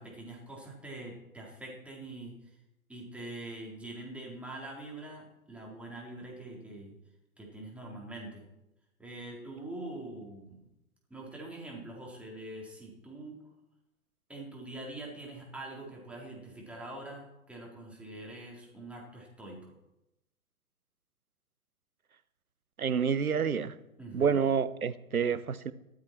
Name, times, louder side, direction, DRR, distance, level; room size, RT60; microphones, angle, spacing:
voice 1, 0.0-2.6 2.9-7.0 7.4-8.4 9.0-10.7 11.1-13.4 14.3-19.6 24.0-24.4, right 2 dB, 5° right, 4.0 m, -44 dB
voice 2, 22.8-23.7 24.1-25.7, right 6 dB, 80° right, 1.0 m, -28 dB
15.5 x 13.0 x 4.6 m
figure-of-eight pair, 120°, 43 cm